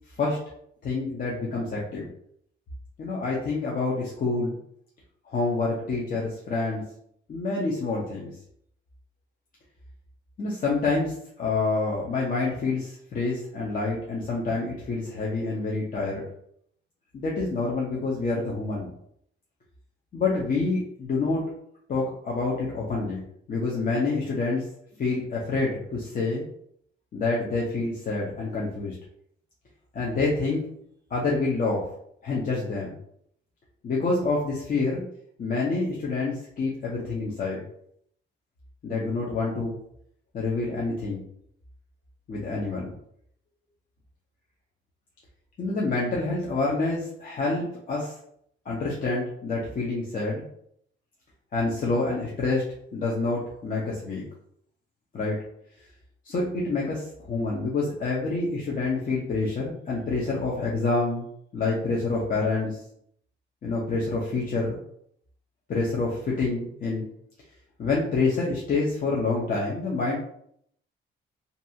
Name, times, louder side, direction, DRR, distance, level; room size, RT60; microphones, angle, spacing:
voice 1, 0.8-2.1 3.0-4.6 5.3-6.8 7.3-8.3 10.4-16.2 17.1-18.9 20.1-21.4 21.9-23.2 23.5-24.6 25.0-26.5 27.1-29.0 29.9-30.6 31.1-31.9 32.2-33.0 33.8-35.0 35.4-37.6 38.8-39.8 40.3-41.2 42.3-42.9 45.6-48.1 48.7-50.4 51.5-54.2 55.1-55.4 56.2-61.3 61.5-62.8 63.6-64.8 65.7-67.1 67.8-70.2, left 3 dB, 45° left, -4 dB, 0.7 m, -27 dB
2.7 x 2.3 x 2.7 m, 0.69 s
cardioid pair, 90°, 20 cm